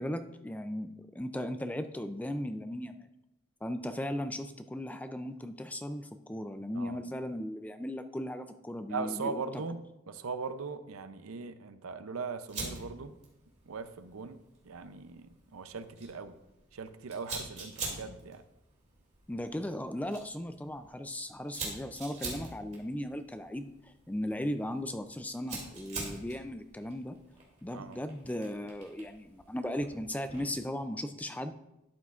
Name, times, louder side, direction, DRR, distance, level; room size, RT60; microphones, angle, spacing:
voice 1, 0.0-3.1 3.6-9.6 19.3-27.2 27.6-31.5, left 1 dB, 5° left, 9 dB, 0.3 m, -37 dB
voice 2, 8.9-13.1 13.7-14.4 14.6-16.4 16.7-18.4 27.7-28.0, right 4 dB, 90° right, 11 dB, 0.6 m, -39 dB
Fire, 12.5-30.7, right 3 dB, 35° right, 2.5 m, -46 dB
12.0 x 8.3 x 2.5 m, 0.89 s
head